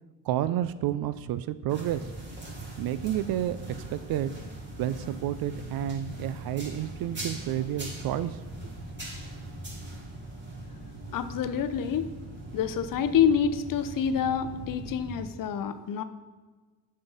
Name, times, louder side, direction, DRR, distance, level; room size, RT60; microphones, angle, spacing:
voice 1, 0.2-2.0 2.8-3.6 3.9-4.3 4.8-8.7, right 12 dB, 55° right, 15 dB, 0.5 m, -30 dB
sound 1, 1.7-15.3, right 1 dB, 25° right, 2.7 m, -41 dB
voice 2, 11.1-12.0 12.5-16.0, left 8 dB, 50° left, 11 dB, 0.7 m, -27 dB
6.8 x 5.6 x 5.5 m, 1.4 s
hypercardioid pair, 60°, 44 cm